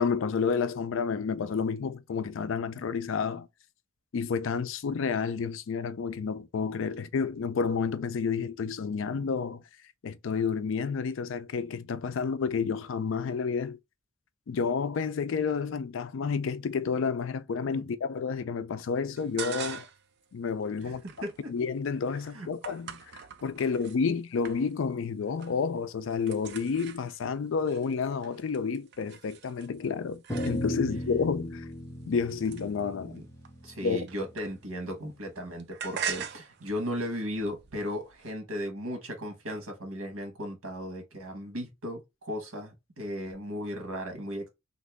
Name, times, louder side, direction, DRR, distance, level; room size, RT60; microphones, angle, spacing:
voice 1, 0.0-3.5 4.1-9.6 10.0-13.8 14.5-19.9 20.3-21.0 21.5-31.7 32.1-33.2 33.8-34.0, left 5 dB, 65° left, 0.4 m, -30 dB
sound 1, 19.2-20.1 20.5-24.0 24.4-25.0 25.2-25.7 25.9-31.0 31.6-34.9 35.1-38.3, right 7 dB, 50° right, 0.4 m, -42 dB
voice 2, 20.8-21.3 22.3-22.5 33.0-33.2 33.6-44.5, equal, 85° right, 1.4 m, -36 dB
sound 2, 30.3-34.8, equal, 15° left, 0.6 m, -36 dB
2.9 x 2.6 x 3.3 m
head